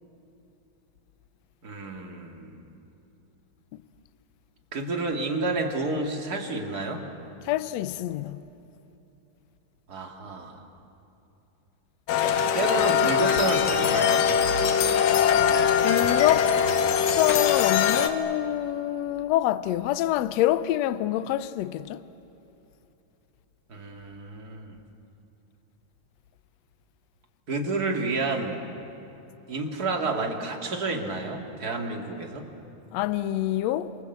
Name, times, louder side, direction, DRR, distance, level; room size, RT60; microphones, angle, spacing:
voice 1, 1.6-2.6 4.7-7.0 9.9-10.6 12.5-14.3 23.7-24.8 27.5-28.7 29.5-32.5, right 3 dB, 30° right, 2.4 m, -30 dB
voice 2, 7.4-8.4 15.8-16.5 17.1-22.0 32.9-33.9, left 14 dB, 85° left, 1.5 m, -26 dB
sound 1, 12.1-18.1, left 8 dB, 60° left, 1.9 m, -22 dB
27.5 x 27.0 x 8.0 m
omnidirectional pair, 3.9 m